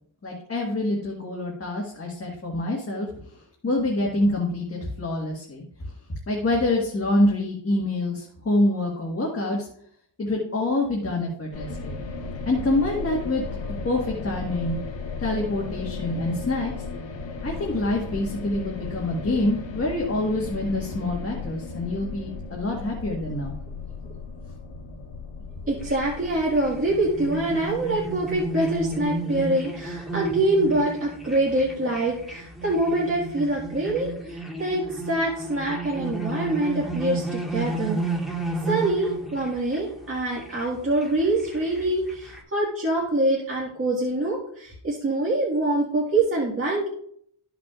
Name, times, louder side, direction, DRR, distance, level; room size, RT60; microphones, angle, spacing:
voice 1, 0.2-3.4 3.6-5.9 6.3-9.7 10.2-11.9 12.4-13.4 13.8-14.8 15.2-16.7 17.4-23.5, left 1 dB, 30° left, -2 dB, 1.6 m, -26 dB
sound 1, 11.5-29.0, left 4 dB, 70° left, 1.5 m, -36 dB
voice 2, 25.6-38.0 38.7-46.9, right 2 dB, 30° right, -4 dB, 1.8 m, -25 dB
sound 2, 25.8-42.4, right 2 dB, ahead, 1.7 m, -33 dB
14.0 x 5.9 x 2.5 m, 0.65 s
wide cardioid pair, 125°, 46 cm